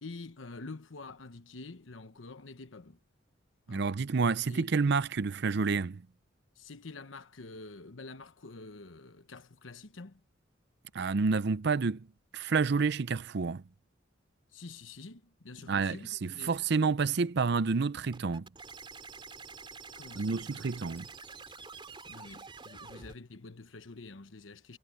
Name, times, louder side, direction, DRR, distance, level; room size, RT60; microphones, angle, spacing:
voice 1, 0.0-3.0 3.7-3.9 4.3-4.7 6.6-10.2 14.5-16.6 19.9-20.6 22.1-24.8, left 3 dB, 80° left, 1.1 m, -47 dB
voice 2, 3.7-6.0 10.9-12.1 12.3-13.6 15.7-18.5 20.2-21.1, right 4 dB, 60° right, 0.5 m, -29 dB
sound 1, 18.1-23.2, right 4 dB, 25° right, 3.6 m, -47 dB
head